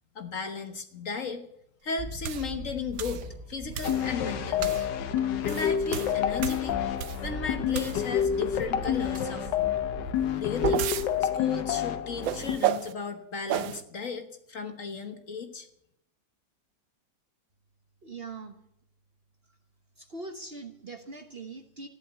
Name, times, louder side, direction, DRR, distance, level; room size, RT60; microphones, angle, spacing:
voice 1, 0.1-1.4 1.8-4.8 5.4-6.8 7.2-9.7 10.4-10.9 11.2-15.7, left 4 dB, 50° left, 6 dB, 1.4 m, -35 dB
sound 1, 2.0-11.1, equal, 20° right, 3.4 m, -42 dB
sound 2, 2.2-2.5 3.0-3.2 3.7-4.1 4.6-4.9 5.3-7.3 7.7-8.2 10.2-11.1 12.2-12.9 13.5-13.8, right 11 dB, 85° right, 1.5 m, -32 dB
sound 3, 3.8-12.6, left 9 dB, 75° left, 1.5 m, -28 dB
voice 2, 18.0-18.6 20.0-21.9, right 3 dB, 40° right, 5 dB, 1.1 m, -41 dB
14.0 x 11.0 x 8.1 m, 0.77 s
omnidirectional pair, 2.0 m